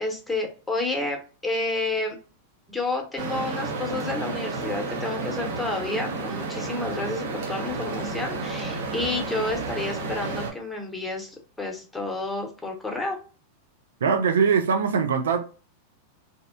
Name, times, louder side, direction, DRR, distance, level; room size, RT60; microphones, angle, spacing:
voice 1, 0.0-2.2 2.7-13.2, left 2 dB, 5° left, 0.8 m, -30 dB
sound 1, 3.2-10.5, right 3 dB, 55° right, 0.7 m, -31 dB
voice 2, 14.0-15.4, right 6 dB, 70° right, 0.3 m, -22 dB
2.6 x 2.0 x 2.5 m
figure-of-eight pair, 95°, 0 cm